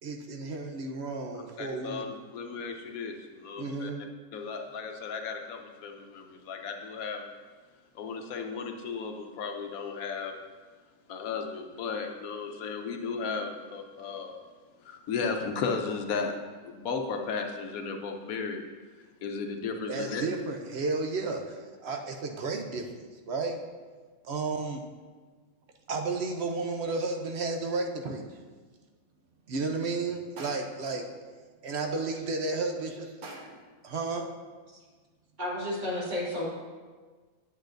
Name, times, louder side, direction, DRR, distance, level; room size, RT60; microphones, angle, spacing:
voice 1, 0.0-2.1 3.6-4.0 19.9-23.6 24.2-24.8 25.9-28.2 29.5-31.0 31.6-33.2 33.8-34.2, right 3 dB, 55° right, 3 dB, 0.8 m, -32 dB
voice 2, 1.6-3.9 4.3-7.3 7.9-10.3 11.1-14.3 14.8-16.3 16.6-18.6 19.2-20.2, left 5 dB, 75° left, 4 dB, 1.1 m, -35 dB
sound 1, 30.4-30.9 33.2-33.8, right 2 dB, 85° right, 1.5 m, -44 dB
voice 3, 35.4-36.5, left 1 dB, 30° right, -7 dB, 2.1 m, -32 dB
8.7 x 8.2 x 2.6 m, 1.4 s
omnidirectional pair, 1.5 m